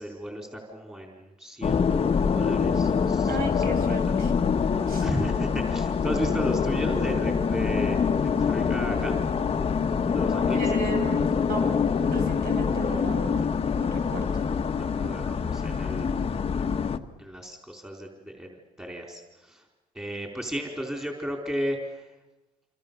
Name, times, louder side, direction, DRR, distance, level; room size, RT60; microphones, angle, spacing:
voice 1, 0.0-4.0 4.6-9.2 10.1-10.7 14.8-16.3 17.2-19.6 19.9-22.0, equal, 10° right, 1 dB, 4.3 m, -34 dB
sound 1, 1.6-17.0, left 6 dB, 35° left, 1.4 m, -25 dB
voice 2, 3.3-4.3 4.9-5.1 10.5-11.6 12.0-13.4 13.8-14.4, right 3 dB, 60° right, 4 dB, 6.9 m, -35 dB
27.5 x 26.5 x 7.1 m, 1.0 s
cardioid pair, 110°, 17 cm